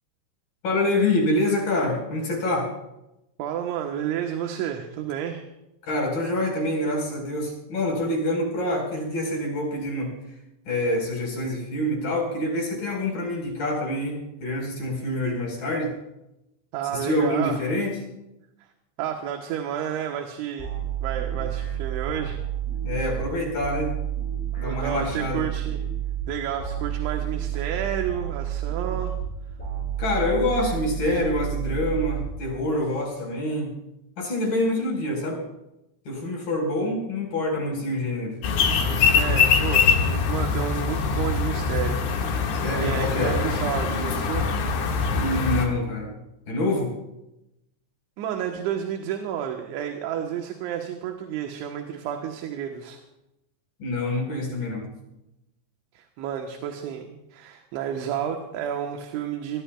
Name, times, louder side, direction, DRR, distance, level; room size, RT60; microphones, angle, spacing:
voice 1, 0.6-2.7 5.9-10.1 10.7-15.9 16.9-18.0 22.8-23.9 24.6-25.4 30.0-33.7 34.2-35.4 36.1-38.4 42.5-43.4 45.1-46.1 46.5-46.9 53.8-54.9, left 1 dB, 50° left, -1 dB, 6.1 m, -26 dB
voice 2, 3.4-5.5 16.7-17.6 19.0-20.7 21.0-22.4 24.6-25.8 26.3-29.2 38.9-44.6 48.2-53.0 56.0-59.6, right 9 dB, 80° right, 3 dB, 3.5 m, -31 dB
sound 1, 20.6-32.8, right 9 dB, 15° left, 8.1 m, -30 dB
sound 2, 38.4-45.7, left 5 dB, 80° left, 4.3 m, -23 dB
25.0 x 22.0 x 2.4 m, 0.90 s
omnidirectional pair, 5.4 m